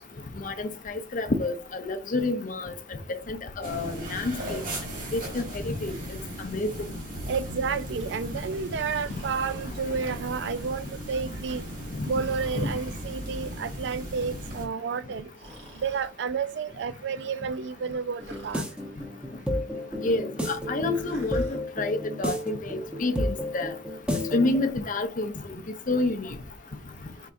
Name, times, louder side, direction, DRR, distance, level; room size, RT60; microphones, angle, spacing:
voice 1, 0.4-2.7 3.1-4.6 5.1-5.9 6.4-6.7 12.5-12.7 20.0-23.7 24.1-25.3 25.9-26.3, left 2 dB, 45° left, 0.6 m, -29 dB
sound 1, 3.6-14.7, equal, 45° right, 1.6 m, -37 dB
voice 2, 7.3-11.6 12.1-15.3 15.8-18.6, right 5 dB, 60° right, 0.4 m, -31 dB
Breathing, 8.9-9.7 12.1-13.1 15.3-16.1 18.2-18.7 20.9-21.6, right 1 dB, 85° right, 2.2 m, -47 dB
sound 2, 18.2-24.7, left 1 dB, 5° right, 0.7 m, -32 dB
4.6 x 3.4 x 2.5 m
head